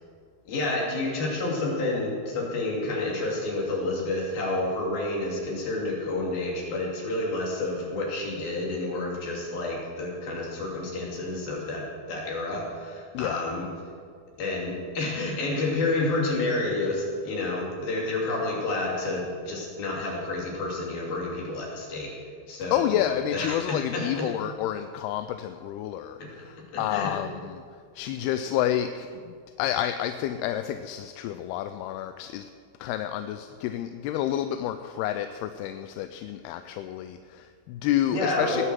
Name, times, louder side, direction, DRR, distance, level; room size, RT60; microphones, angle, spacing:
voice 1, 0.5-13.7 14.4-22.1 22.5-24.3 26.2-26.3 26.7-27.1 38.1-38.6, left 2 dB, 70° left, -2 dB, 4.7 m, -29 dB
voice 2, 22.7-32.5 32.8-38.6, left 11 dB, 85° left, 9 dB, 2.6 m, -29 dB
19.0 x 8.0 x 7.6 m, 2.1 s
omnidirectional pair, 4.5 m